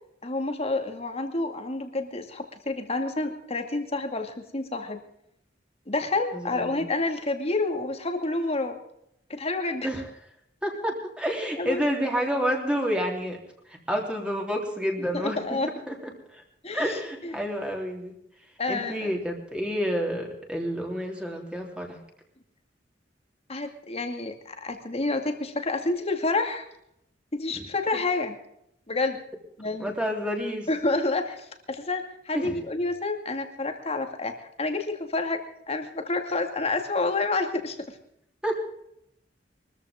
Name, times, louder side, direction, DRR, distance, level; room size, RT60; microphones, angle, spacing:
voice 1, 0.2-5.0 5.9-8.8 9.3-9.9 11.6-11.8 15.0-15.7 16.6-17.4 18.6-19.1 23.5-26.7 27.3-28.4 28.9-29.2 29.6-29.9 30.7-38.0, left 2 dB, 35° left, 5 dB, 2.3 m, -29 dB
voice 2, 6.3-6.8 9.8-10.0 10.6-13.4 13.7-15.4 15.9-16.4 16.7-18.1 18.7-22.0 29.8-30.7 32.3-32.6 38.4-38.6, equal, 5° right, 0 dB, 3.5 m, -29 dB
23.0 x 14.5 x 3.8 m, 0.75 s
head